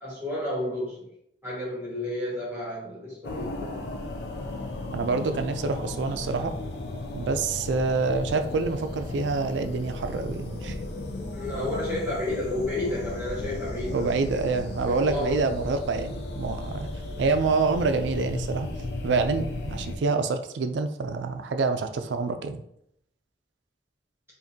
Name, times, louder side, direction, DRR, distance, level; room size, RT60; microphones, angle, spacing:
voice 1, 0.0-1.1 1.4-3.8 11.3-14.6 14.9-15.4, left 1 dB, 15° right, -7 dB, 1.3 m, -31 dB
sound 1, 3.2-20.0, left 2 dB, 65° left, 0.6 m, -35 dB
voice 2, 4.9-6.5 7.1-10.7 13.9-16.9 17.2-18.7 19.0-22.6, right 4 dB, 85° right, 8 dB, 0.4 m, -27 dB
4.9 x 2.5 x 2.7 m, 0.73 s
head